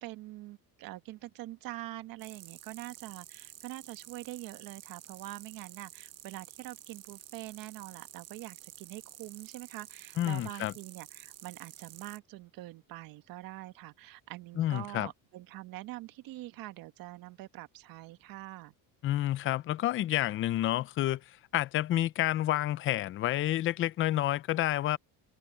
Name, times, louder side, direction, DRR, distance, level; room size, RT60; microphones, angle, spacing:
voice 1, 0.0-18.7, right 17 dB, 65° right, 1.5 m, -44 dB
sound 1, 2.2-12.2, right 12 dB, 40° right, 1.1 m, -51 dB
voice 2, 10.2-10.7 14.6-15.1 19.0-21.2 21.5-25.0, left 14 dB, 35° left, 0.5 m, -29 dB
open air
cardioid pair, 160°, 37 cm